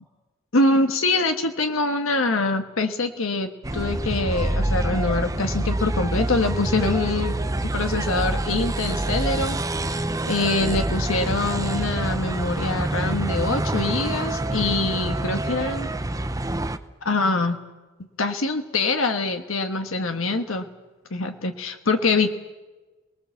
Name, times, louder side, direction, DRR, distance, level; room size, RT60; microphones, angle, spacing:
voice 1, 0.5-7.4 7.7-9.6 9.9-10.0 10.3-15.9 17.0-17.6 18.2-20.7 21.1-22.3, left 3 dB, 75° left, 6 dB, 1.5 m, -24 dB
sound 1, 3.6-16.8, right 1 dB, 15° right, 0.9 m, -26 dB
28.5 x 20.0 x 7.2 m, 1.2 s
head